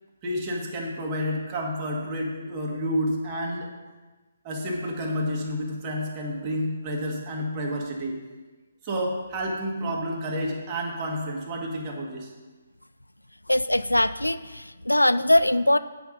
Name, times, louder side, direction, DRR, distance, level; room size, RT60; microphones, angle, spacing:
voice 1, 0.2-3.7 4.4-8.2 8.8-12.3, equal, 25° right, -1 dB, 1.6 m, -30 dB
voice 2, 13.5-15.8, left 1 dB, 90° left, 14 dB, 0.3 m, -21 dB
8.5 x 5.8 x 5.1 m, 1.3 s
figure-of-eight pair, 135°, 0 cm